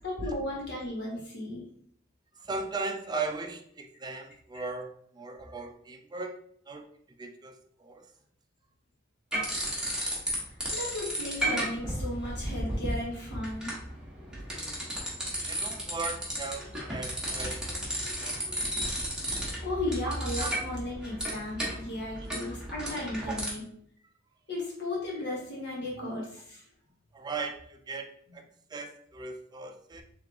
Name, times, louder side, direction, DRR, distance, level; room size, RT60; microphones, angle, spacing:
voice 1, 0.0-1.7 4.5-4.6 10.2-10.4 10.7-13.7 19.6-23.6 24.5-26.6, left 1 dB, 60° left, -4 dB, 1.4 m, -35 dB
voice 2, 2.4-6.4 6.7-6.9 7.2-8.1 14.3-14.4 15.5-17.8 18.2-18.7 19.0-19.1 19.4-19.5 20.0-20.5 22.2-22.3 23.3-23.4 26.0-26.1 27.1-28.4 28.7-30.0, right 3 dB, 20° right, 5 dB, 0.4 m, -38 dB
sound 1, 9.3-10.4 10.6-23.5, right 1 dB, 5° right, 1.1 m, -34 dB
3.3 x 3.2 x 3.7 m, 0.65 s
head